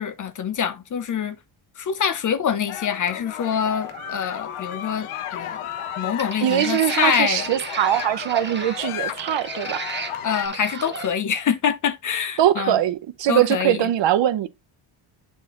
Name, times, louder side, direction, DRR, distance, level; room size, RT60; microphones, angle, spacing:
voice 1, 0.0-1.4 1.8-5.7 6.0-7.5 10.2-12.8 13.3-13.9, left 8 dB, 40° left, 0.7 m, -25 dB
sound 1, 2.7-10.5, left 11 dB, 80° left, 0.8 m, -34 dB
sound 2, 3.4-11.1, right 5 dB, 20° right, 1.0 m, -36 dB
voice 2, 6.4-9.8 12.4-14.5, right 12 dB, 60° right, 0.9 m, -21 dB
8.2 x 4.3 x 3.0 m
cardioid pair, 120°, 49 cm